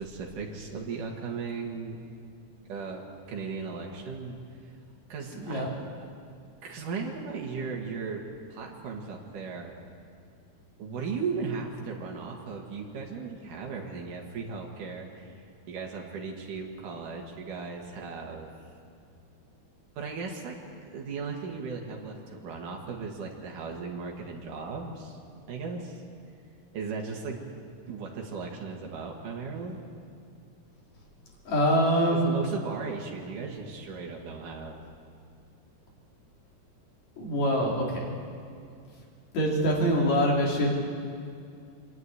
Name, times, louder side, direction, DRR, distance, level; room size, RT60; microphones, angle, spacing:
voice 1, 0.0-2.0 2.7-4.4 5.1-5.7 6.6-8.2 8.5-9.8 10.8-15.3 15.7-18.5 20.0-20.6 20.8-25.2 25.5-26.0 26.7-27.5 27.9-29.8 32.1-34.8, right 5 dB, 85° right, 0 dB, 3.4 m, -36 dB
voice 2, 5.3-5.7 31.5-32.4 37.2-38.1 39.3-40.7, equal, 60° left, -3 dB, 4.4 m, -24 dB
25.0 x 10.5 x 9.7 m, 2.4 s
omnidirectional pair, 3.6 m